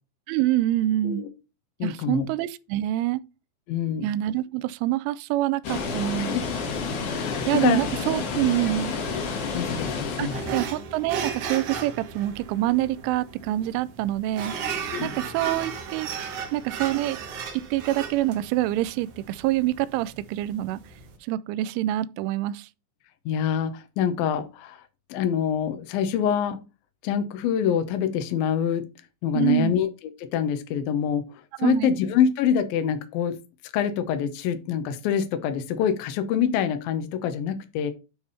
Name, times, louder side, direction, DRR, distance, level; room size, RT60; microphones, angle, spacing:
voice 1, 0.3-1.3 1.8-3.2 4.0-6.4 7.5-8.9 10.2-14.5 15.0-16.1 16.5-17.2 17.5-20.8 21.3-22.7 29.3-29.8 31.6-32.0, right 15 dB, 90° right, 3.0 m, -26 dB
voice 2, 1.8-2.3 3.7-4.1 6.2-6.4 7.1-7.8 9.5-10.4 14.9-15.1 23.3-24.8 25.1-26.6 27.0-28.8 29.2-29.9 30.3-31.2 31.6-33.4 33.7-37.9, left 8 dB, 75° left, 2.1 m, -25 dB
Water, 5.6-10.7, left 5 dB, 60° left, 2.3 m, -30 dB
sound 1, 10.3-21.1, right 6 dB, 75° right, 1.8 m, -35 dB
9.3 x 3.4 x 5.5 m
omnidirectional pair, 5.4 m